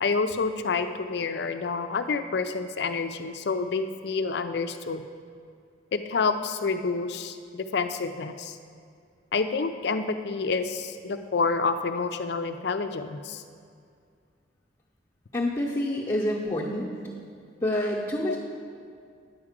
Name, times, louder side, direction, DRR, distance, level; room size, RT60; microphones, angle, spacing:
voice 1, 0.0-5.0 5.9-8.6 9.3-13.4 18.3-18.4, left 4 dB, 60° left, 9 dB, 0.5 m, -28 dB
voice 2, 15.3-16.9 17.6-18.4, left 1 dB, 20° left, -6 dB, 0.8 m, -27 dB
9.5 x 4.8 x 7.4 m, 2.3 s
head